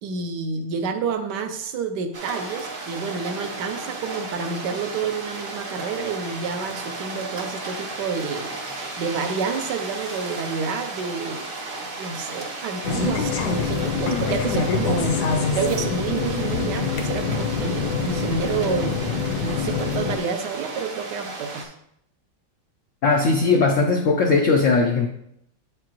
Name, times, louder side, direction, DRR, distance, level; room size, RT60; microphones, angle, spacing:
voice 1, 0.0-8.6 9.0-11.5 12.0-15.2 15.5-19.0 19.4-21.7, right 5 dB, 70° right, 7 dB, 1.1 m, -29 dB
sound 1, 2.1-21.6, right 3 dB, 50° right, 0.6 m, -34 dB
sound 2, 12.8-20.2, left 5 dB, 70° left, 1.1 m, -25 dB
voice 2, 23.0-25.1, left 4 dB, 85° left, 3 dB, 0.6 m, -19 dB
8.0 x 4.9 x 3.0 m, 0.76 s
omnidirectional pair, 2.0 m